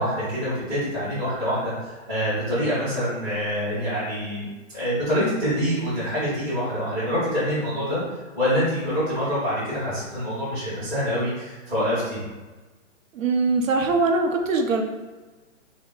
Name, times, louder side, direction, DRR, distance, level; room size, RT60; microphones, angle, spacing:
voice 1, 0.0-8.0 8.3-12.2, equal, 5° right, -13 dB, 0.5 m, -26 dB
voice 2, 13.1-14.8, right 3 dB, 90° right, 4 dB, 0.7 m, -22 dB
3.6 x 2.1 x 3.6 m, 1.2 s
hypercardioid pair, 165°, 38 cm